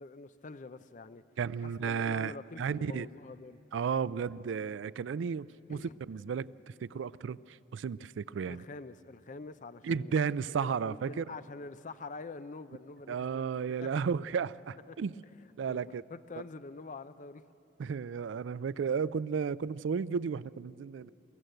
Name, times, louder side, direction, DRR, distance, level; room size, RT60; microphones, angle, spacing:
voice 1, 0.0-1.2 1.6-3.6 5.7-6.0 8.5-10.1 10.5-13.9 14.9-15.0 15.7-17.4, left 3 dB, 40° left, 13 dB, 0.5 m, -46 dB
voice 2, 1.4-3.1 3.7-8.6 9.8-11.2 13.1-15.1 15.6-16.0 17.8-21.1, right 6 dB, 75° right, 19 dB, 0.4 m, -33 dB
23.0 x 14.5 x 7.8 m, 2.8 s
head